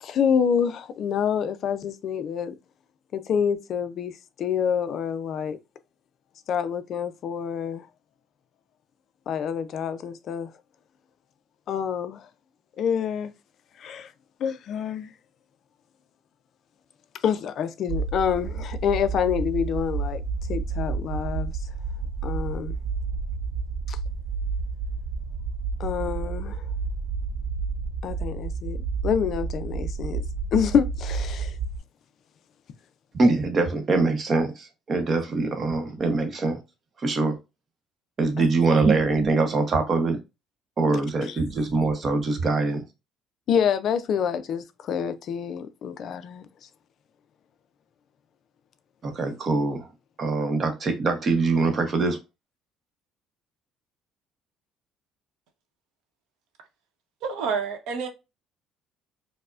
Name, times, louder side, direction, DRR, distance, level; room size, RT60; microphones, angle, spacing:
voice 1, 0.0-2.5 3.1-4.1 4.4-5.6 6.5-7.9 9.3-10.5 11.7-12.2 12.8-13.3 13.8-14.1 14.4-15.1 17.2-20.2 20.5-21.5 22.2-22.7 23.9-24.0 25.8-26.7 28.0-28.8 29.0-30.2 30.5-31.6 38.4-38.5 41.3-41.4 43.5-46.5, left 7 dB, 45° left, 0.3 m, -27 dB
sound 1, 17.9-31.8, right 4 dB, 55° right, 0.3 m, -30 dB
voice 2, 33.1-36.6 37.0-37.4 38.2-40.2 40.8-42.8 49.0-49.9 50.2-52.2, right 3 dB, 30° right, 0.7 m, -23 dB
voice 3, 57.2-58.1, right 5 dB, 80° right, 0.8 m, -28 dB
4.6 x 2.0 x 2.4 m
cardioid pair, 160°, 0 cm